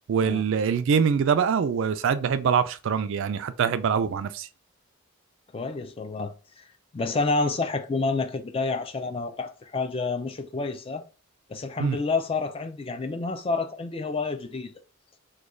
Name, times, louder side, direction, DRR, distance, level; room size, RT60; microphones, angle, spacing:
voice 1, 0.1-4.5 11.8-12.0, right 6 dB, 60° right, 0.3 m, -24 dB
voice 2, 5.5-6.7 6.9-11.0 11.5-14.7, left 3 dB, 25° left, 0.3 m, -29 dB
3.1 x 2.2 x 3.6 m
head